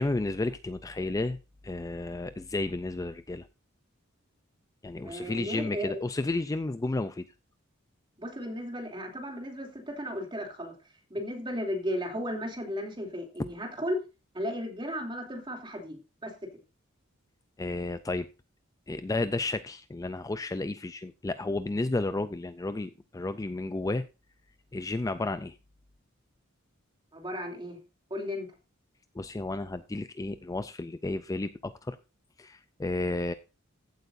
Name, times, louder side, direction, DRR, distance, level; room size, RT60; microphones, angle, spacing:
voice 1, 0.0-1.4 1.6-3.5 4.8-7.2 17.6-18.3 18.9-24.0 24.7-25.6 29.2-32.0 32.4-33.3, left 2 dB, 15° left, 0.4 m, -32 dB
voice 2, 5.0-6.0 8.2-10.7 11.1-14.0 14.3-16.3 27.1-27.8 28.1-28.5, equal, 25° right, 2.9 m, -35 dB
15.0 x 8.0 x 2.6 m
head